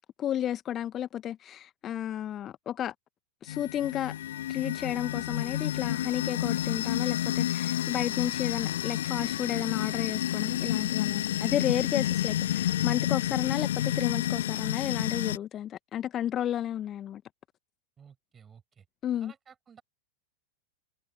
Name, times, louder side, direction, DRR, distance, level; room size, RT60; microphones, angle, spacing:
voice 1, 0.2-2.9 3.4-4.1 4.5-17.2 19.0-19.3, left 11 dB, 30° left, 1.0 m, -32 dB
sound 1, 3.5-15.4, left 12 dB, 60° left, 0.4 m, -30 dB
voice 2, 18.0-18.8 19.2-19.8, right 7 dB, 20° right, 6.3 m, -55 dB
figure-of-eight pair, 90°, 0 cm